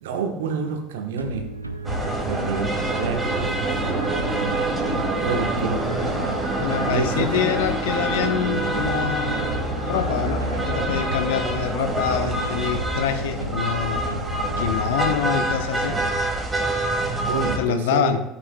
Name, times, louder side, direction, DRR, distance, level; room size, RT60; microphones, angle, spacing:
voice 1, 0.0-1.5 2.2-4.1 5.2-6.0 6.8-7.4 17.2-18.2, right 5 dB, 70° right, 5 dB, 1.1 m, -28 dB
sound 1, 1.2-16.2, right 1 dB, 90° right, 0.5 m, -33 dB
sound 2, 1.8-17.6, right 1 dB, 10° right, 2.4 m, -26 dB
voice 2, 6.6-9.3 9.8-10.4 10.7-14.1 14.6-16.0 17.4-18.2, left 9 dB, 65° left, 9 dB, 0.7 m, -26 dB
14.5 x 7.5 x 2.2 m, 0.89 s
figure-of-eight pair, 65°, 0 cm